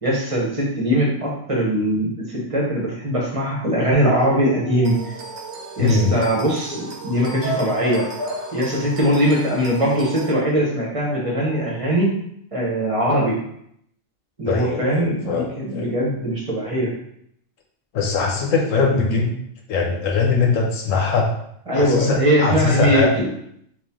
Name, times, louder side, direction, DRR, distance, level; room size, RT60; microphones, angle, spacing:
voice 1, 0.0-5.1 5.8-8.1 8.5-12.1 12.5-13.4 14.4-16.9 18.8-19.2 21.7-23.3, equal, 30° right, -4 dB, 0.9 m, -21 dB
Bark / Motor vehicle (road) / Siren, 3.3-12.1, right 1 dB, 60° left, 0.5 m, -36 dB
sound 1, 4.8-10.3, right 4 dB, 60° right, 0.9 m, -37 dB
voice 2, 5.8-6.2 14.4-15.9 17.9-19.3 19.7-21.3 21.7-23.1, left 4 dB, 80° left, 1 dB, 1.1 m, -21 dB
4.3 x 2.5 x 3.6 m, 0.72 s
omnidirectional pair, 1.3 m